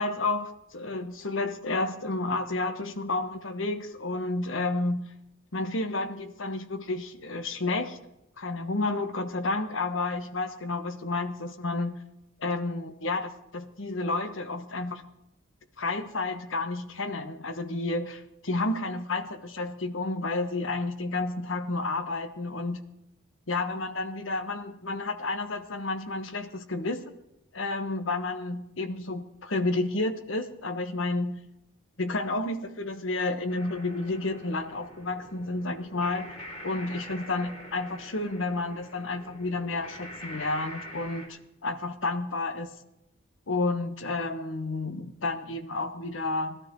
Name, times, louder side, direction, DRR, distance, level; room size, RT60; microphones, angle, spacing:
voice 1, 0.0-5.1 5.5-8.0 8.4-12.0 12.4-15.0 15.8-22.8 23.5-27.0 27.5-31.5 32.0-36.4 36.6-42.7 43.5-46.6, left 2 dB, 70° left, 9 dB, 1.2 m, -31 dB
sound 1, 33.5-41.3, equal, 40° left, 3.6 m, -45 dB
20.0 x 12.5 x 3.9 m, 0.87 s
head